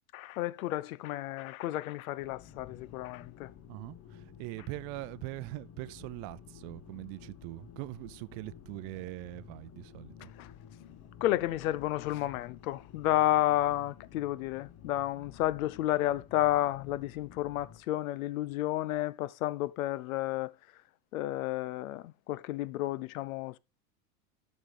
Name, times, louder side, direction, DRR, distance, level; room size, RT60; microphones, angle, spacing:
voice 1, 0.1-3.5 10.4-10.5 11.2-20.5 21.1-23.6, left 14 dB, 85° left, 0.6 m, -31 dB
sound 1, 2.2-17.8, left 9 dB, 35° left, 1.0 m, -52 dB
voice 2, 3.7-10.1, right 21 dB, 55° right, 0.5 m, -42 dB
11.5 x 6.3 x 3.4 m
hypercardioid pair, 105°, 41 cm